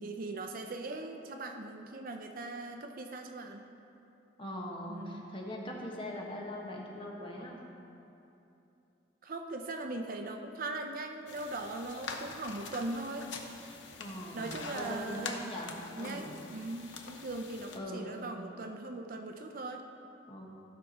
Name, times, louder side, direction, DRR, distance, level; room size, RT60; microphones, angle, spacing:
voice 1, 0.0-3.7 4.9-5.3 9.2-13.3 14.3-15.4 15.9-19.8, right 2 dB, 50° right, 5 dB, 0.6 m, -40 dB
voice 2, 4.4-7.6 14.0-16.4 17.7-18.2 20.3-20.5, left 1 dB, 30° left, -2 dB, 1.3 m, -41 dB
sound 1, 11.3-17.8, left 4 dB, 75° left, 0.9 m, -45 dB
14.5 x 5.9 x 4.2 m, 2.8 s
head